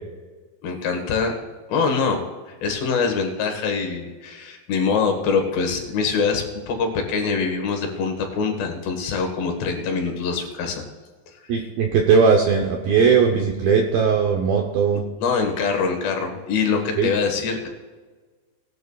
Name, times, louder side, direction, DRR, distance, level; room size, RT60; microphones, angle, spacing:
voice 1, 0.6-1.4 1.7-10.8 11.5-11.7 15.2-17.7, left 5 dB, 70° left, 3 dB, 3.6 m, -24 dB
voice 2, 11.5-15.0 17.0-17.1, right 5 dB, 75° right, 2 dB, 2.2 m, -18 dB
19.0 x 12.5 x 2.4 m, 1.4 s
omnidirectional pair, 5.3 m